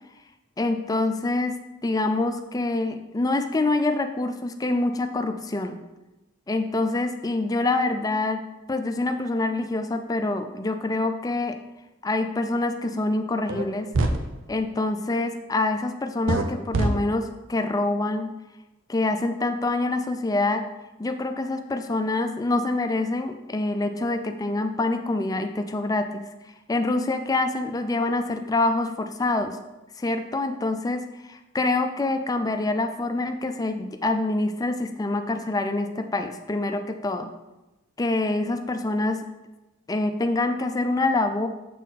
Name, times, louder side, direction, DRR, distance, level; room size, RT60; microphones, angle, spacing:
voice 1, 0.6-5.8 6.5-11.6 12.0-13.9 14.5-18.4 18.9-20.7 21.0-26.3 26.7-29.6 30.0-37.3 38.0-39.3 39.9-41.5, left 2 dB, 20° left, 7 dB, 0.4 m, -26 dB
sound 1, 13.5-13.6 13.9-14.2 16.3-16.4 16.7-16.9, right 2 dB, 90° right, 0.7 m, -22 dB
7.3 x 4.2 x 4.0 m, 1.0 s
head